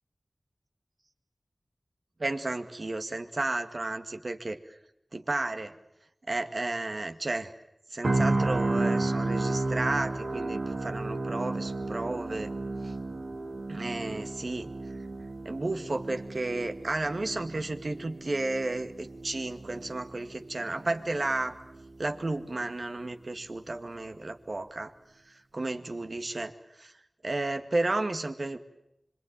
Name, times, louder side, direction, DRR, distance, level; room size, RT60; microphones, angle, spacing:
voice 1, 2.2-4.6 5.1-5.7 6.3-7.5 7.9-12.5 12.8-12.9 13.7-14.7 15.5-21.5 22.0-24.9 25.3-26.5 26.8-26.9 27.2-28.6, right 2 dB, 65° right, 7 dB, 2.1 m, -32 dB
sound 1, 8.0-22.0 22.4-22.6, right 2 dB, 80° right, 3.1 m, -33 dB
26.0 x 24.5 x 9.1 m, 0.85 s
wide cardioid pair, 45°, 0 cm